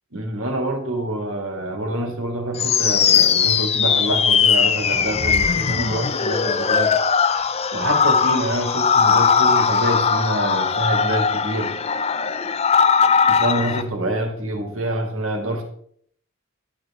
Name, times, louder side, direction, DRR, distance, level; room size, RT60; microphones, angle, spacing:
voice 1, 0.1-6.9 7.7-11.8 13.3-15.6, right 1 dB, 70° right, 3 dB, 2.2 m, -26 dB
sound 1, 2.6-13.8, left 6 dB, 30° left, 0.5 m, -19 dB
11.5 x 8.4 x 3.7 m, 0.62 s
head